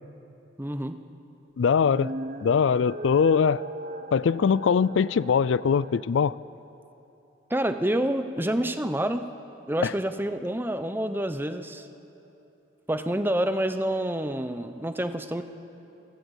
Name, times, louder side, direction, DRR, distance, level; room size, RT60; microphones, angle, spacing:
voice 1, 0.6-1.0 7.5-9.3 9.7-11.8 12.9-15.4, right 1 dB, 10° right, 9 dB, 0.8 m, -28 dB
voice 2, 1.6-2.1 2.4-3.6 4.1-6.3 9.8-9.9, left 6 dB, 85° left, 20 dB, 0.4 m, -22 dB
sound 1, 1.7-6.1, right 1 dB, 45° right, 0.9 m, -39 dB
29.0 x 12.0 x 8.2 m, 3.0 s
head